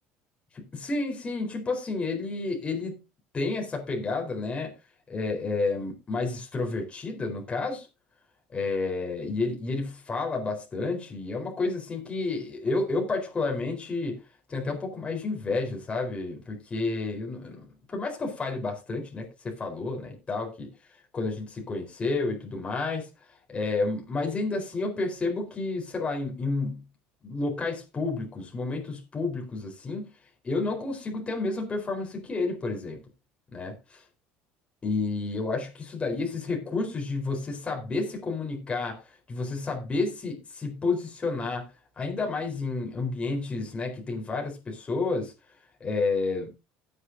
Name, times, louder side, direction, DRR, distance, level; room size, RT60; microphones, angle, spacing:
voice 1, 0.5-3.0 3.3-4.7 5.1-7.9 8.5-14.2 14.5-20.7 21.1-23.1 23.5-26.8 27.2-30.1 30.4-33.0 33.5-34.0 34.8-41.7 42.0-45.3 45.8-46.5, left 3 dB, 25° left, 1 dB, 4.1 m, -30 dB
17.0 x 8.1 x 2.7 m, 0.27 s
supercardioid pair, 95°, 4 cm